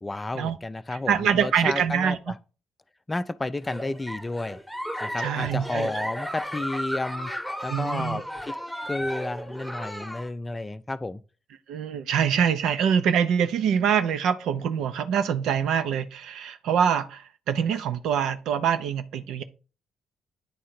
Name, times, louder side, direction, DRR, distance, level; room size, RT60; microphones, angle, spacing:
voice 1, 0.0-2.3 3.1-4.6 5.0-7.3 7.6-8.6 8.8-11.2, left 2 dB, 20° left, 0.5 m, -32 dB
voice 2, 0.9-2.2 5.2-5.9 7.7-8.2 11.7-19.4, right 8 dB, 60° right, 0.6 m, -25 dB
Giggle, 3.6-10.3, equal, ahead, 1.0 m, -34 dB
9.3 x 3.7 x 4.4 m
figure-of-eight pair, 45°, 0 cm